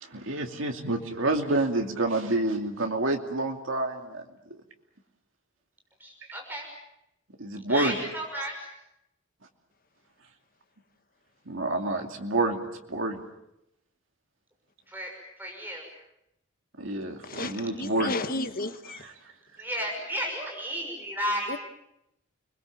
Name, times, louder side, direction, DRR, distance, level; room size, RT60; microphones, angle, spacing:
voice 1, 0.0-4.2 4.5-4.6 7.4-7.9 11.5-12.6 12.9-13.2 16.8-18.1 18.9-19.1, right 2 dB, 80° right, 3 dB, 2.6 m, -28 dB
voice 2, 6.0-6.6 7.7-8.7 14.9-15.1 15.4-15.8 19.6-21.5, equal, 10° right, 1 dB, 6.2 m, -33 dB
voice 3, 17.2-19.0 21.5-21.6, left 2 dB, 45° left, 9 dB, 1.5 m, -33 dB
29.5 x 21.5 x 7.4 m, 0.83 s
head